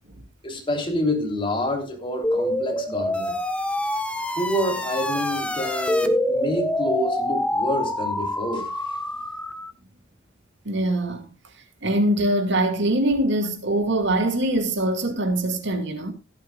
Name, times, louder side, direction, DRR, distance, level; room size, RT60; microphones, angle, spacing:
voice 1, 0.4-3.4 4.3-8.7, left 1 dB, 25° left, 3.2 m, -28 dB
sound 1, 2.2-9.7, left 1 dB, 5° left, 1.3 m, -26 dB
voice 2, 10.7-11.3 11.8-16.1, right 1 dB, 65° right, 2.2 m, -23 dB
16.5 x 12.0 x 2.4 m
head